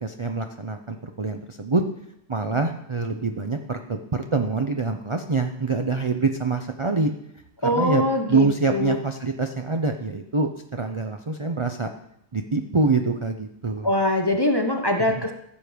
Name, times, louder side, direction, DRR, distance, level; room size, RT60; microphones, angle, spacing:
voice 1, 0.0-1.8 2.3-7.1 7.6-11.9 12.3-13.9 15.1-15.3, right 3 dB, 40° right, 5 dB, 0.4 m, -25 dB
voice 2, 7.6-9.0 13.8-15.3, left 1 dB, 20° left, 4 dB, 0.8 m, -23 dB
14.0 x 7.6 x 5.1 m, 0.78 s
omnidirectional pair, 1.6 m